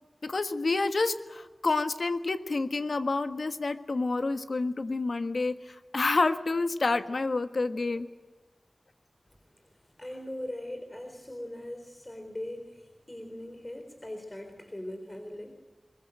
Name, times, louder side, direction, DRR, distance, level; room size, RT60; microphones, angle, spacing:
voice 1, 0.2-8.1, left 3 dB, 70° left, 9 dB, 1.5 m, -29 dB
voice 2, 10.0-15.5, left 1 dB, 25° left, 5 dB, 4.0 m, -40 dB
23.5 x 21.5 x 9.0 m, 1.2 s
wide cardioid pair, 65°, 0 cm